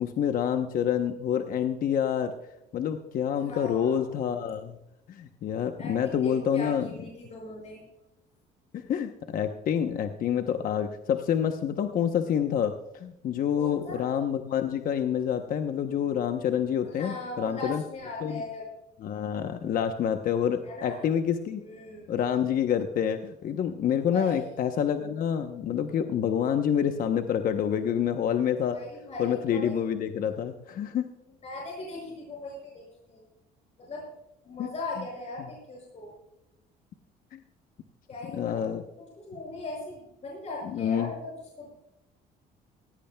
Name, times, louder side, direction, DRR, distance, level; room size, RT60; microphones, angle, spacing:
voice 1, 0.0-2.3 2.7-4.8 5.1-6.9 8.7-17.8 18.2-18.4 19.0-21.6 22.1-28.8 29.2-31.0 34.6-34.7 37.3-37.4 38.3-38.8 40.7-41.1, left 8 dB, 55° left, 7 dB, 0.9 m, -27 dB
voice 2, 3.4-4.1 5.8-7.8 13.6-14.1 16.8-18.7 20.6-21.0 21.6-22.1 24.1-24.5 28.7-29.8 30.2-30.3 31.4-33.3 33.8-34.1 34.4-36.1 38.1-38.7 39.2-41.7, left 2 dB, 40° left, -2 dB, 5.8 m, -39 dB
18.0 x 16.0 x 2.3 m, 0.87 s
cardioid pair, 110°, 17 cm